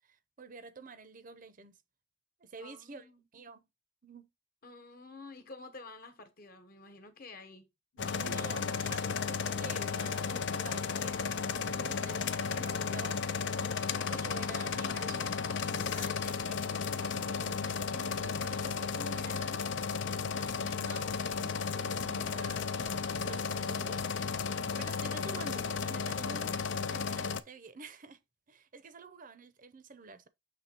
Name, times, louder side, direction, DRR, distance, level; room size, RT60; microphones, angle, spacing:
voice 1, 0.0-1.8 2.4-3.6 4.0-4.3 8.1-13.2 13.5-19.6 20.2-22.8 23.2-26.6 26.8-28.2 28.5-30.3, right 4 dB, 45° right, 0.7 m, -49 dB
voice 2, 2.6-3.2 4.6-7.7 7.9-8.5, left 3 dB, 50° left, 1.2 m, -50 dB
sound 1, 8.0-27.4, left 5 dB, 65° left, 0.5 m, -34 dB
6.8 x 3.2 x 4.4 m
head